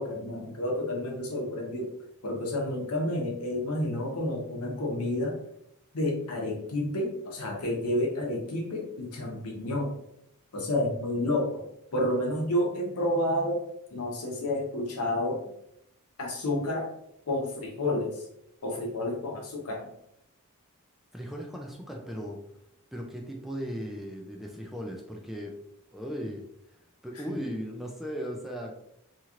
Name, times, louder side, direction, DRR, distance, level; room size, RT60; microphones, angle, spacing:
voice 1, 0.0-1.9 2.2-5.4 5.9-9.9 10.5-11.7 11.9-13.6 13.9-15.4 16.2-16.9 17.3-18.2 18.6-19.9 27.2-27.3, left 1 dB, 80° left, 0 dB, 0.9 m, -30 dB
voice 2, 21.1-22.4 22.9-25.6 25.9-26.4 26.7-28.7, equal, ahead, 0 dB, 0.3 m, -37 dB
2.9 x 2.9 x 2.4 m, 0.77 s
head